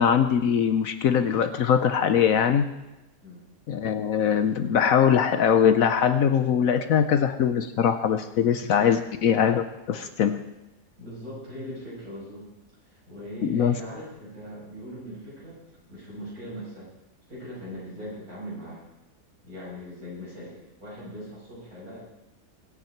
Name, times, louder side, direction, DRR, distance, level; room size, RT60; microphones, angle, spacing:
voice 1, 0.0-2.7 3.7-10.4 13.4-13.7, left 8 dB, 65° left, 10 dB, 1.0 m, -22 dB
voice 2, 11.0-12.5 12.9-15.6 15.9-16.9 17.3-18.8 19.4-22.0, equal, 60° right, -7 dB, 6.9 m, -40 dB
22.5 x 8.4 x 4.5 m, 0.98 s
omnidirectional pair, 1.7 m